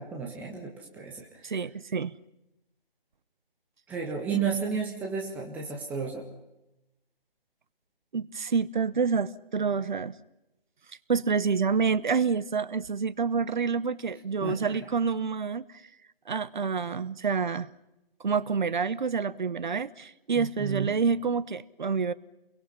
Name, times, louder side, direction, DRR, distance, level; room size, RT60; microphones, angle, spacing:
voice 1, 0.0-1.5 3.9-6.2 14.4-14.7 20.3-21.0, right 6 dB, 5° right, -1 dB, 1.5 m, -33 dB
voice 2, 1.4-2.2 8.1-10.1 11.1-15.6 16.3-17.7 18.2-22.1, right 5 dB, 50° right, 18 dB, 1.0 m, -28 dB
29.5 x 23.0 x 5.7 m, 0.95 s
figure-of-eight pair, 150°, 30 cm